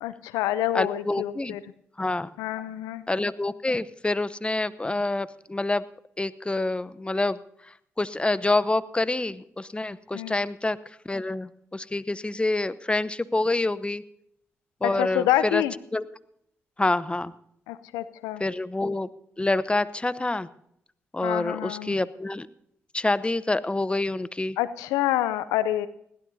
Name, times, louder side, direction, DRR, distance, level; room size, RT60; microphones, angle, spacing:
voice 1, 0.0-1.6 2.4-3.0 10.1-10.4 15.0-15.7 17.7-18.4 21.2-22.0 24.6-25.9, left 14 dB, 85° left, 15 dB, 0.5 m, -27 dB
voice 2, 0.7-1.5 2.0-2.3 3.1-5.8 6.2-7.4 8.0-10.8 11.0-14.0 14.8-15.6 15.9-16.0 16.8-17.3 18.4-19.1 19.4-20.5 21.1-22.5 22.9-24.6, left 2 dB, 20° left, 16 dB, 0.8 m, -27 dB
21.0 x 16.0 x 2.7 m, 0.72 s
hypercardioid pair, 40°, 6 cm